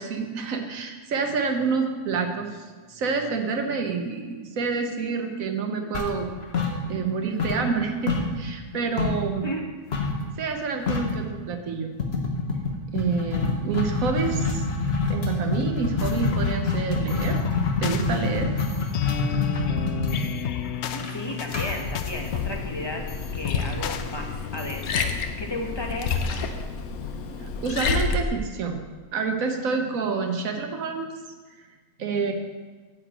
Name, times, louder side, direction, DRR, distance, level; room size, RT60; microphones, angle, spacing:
voice 1, 0.0-6.3 6.9-9.5 10.4-11.9 12.9-14.7 15.1-17.4 17.8-18.5 27.6-28.8 29.1-31.1 32.0-32.3, right 5 dB, 60° right, 4 dB, 1.4 m, -28 dB
sound 1, 5.9-7.1 7.4-9.3 9.9-10.2 10.5-10.6 10.9-11.2 12.0-22.8, left 4 dB, 45° left, 1.3 m, -26 dB
sound 2, 16.0-26.2, left 9 dB, 90° left, 0.5 m, -34 dB
voice 2, 20.9-25.1 25.4-26.5, left 1 dB, 20° left, 1 dB, 1.0 m, -34 dB
Liquid, 22.1-28.2, left 4 dB, 70° left, 1.2 m, -30 dB
9.8 x 5.0 x 7.6 m, 1.4 s
omnidirectional pair, 1.7 m